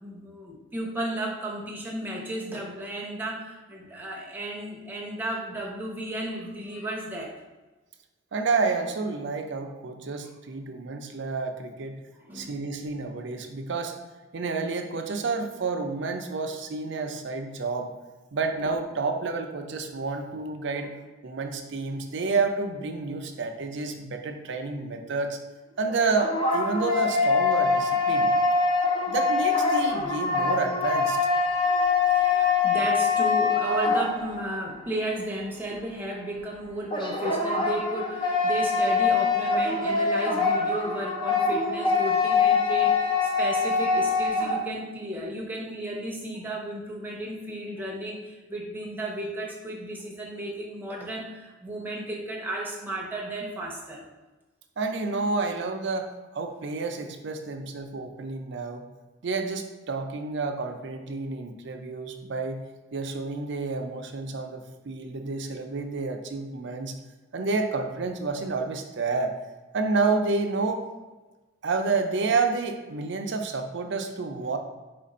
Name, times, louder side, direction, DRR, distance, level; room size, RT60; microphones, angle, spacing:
voice 1, 0.0-7.3 12.3-12.5 32.1-54.1, right 1 dB, 10° right, -3 dB, 0.7 m, -34 dB
voice 2, 8.3-12.0 12.3-13.9 14.3-17.9 18.3-20.9 21.2-25.4 25.8-28.3 29.1-31.2 54.8-58.8 59.2-62.6 62.9-66.9 67.3-69.3 69.7-70.8 71.6-74.6, right 4 dB, 60° right, 5 dB, 0.5 m, -29 dB
sound 1, 25.9-34.6 36.9-44.7, left 4 dB, 25° left, 0.5 m, -24 dB
4.5 x 2.5 x 4.1 m, 1.2 s
head